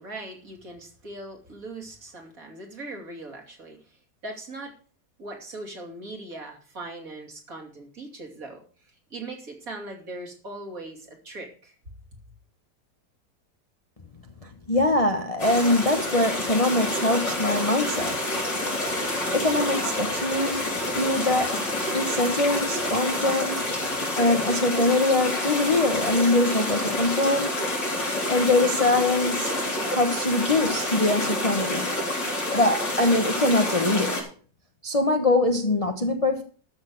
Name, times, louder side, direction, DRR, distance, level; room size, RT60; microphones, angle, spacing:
voice 1, 0.0-4.7 5.2-11.7, right 2 dB, 50° right, 3.1 m, -40 dB
voice 2, 14.7-18.3 19.3-21.6 21.9-23.6 24.1-27.7 28.3-29.5 29.9-31.9 32.5-34.2 34.8-36.4, left 2 dB, 25° left, 0.9 m, -23 dB
sound 1, 15.4-34.2, left 1 dB, 80° left, 4.6 m, -28 dB
13.0 x 6.5 x 6.4 m
omnidirectional pair, 1.9 m